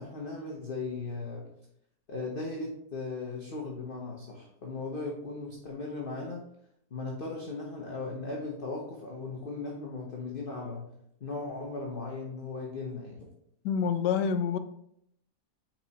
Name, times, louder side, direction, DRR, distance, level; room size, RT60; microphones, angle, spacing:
voice 1, 0.0-1.5 2.1-6.4 6.9-10.9 11.2-13.3, left 3 dB, 40° left, -1 dB, 0.9 m, -37 dB
voice 2, 13.6-14.6, left 7 dB, 85° left, 10 dB, 1.2 m, -27 dB
6.0 x 4.6 x 4.1 m, 0.74 s
omnidirectional pair, 1.8 m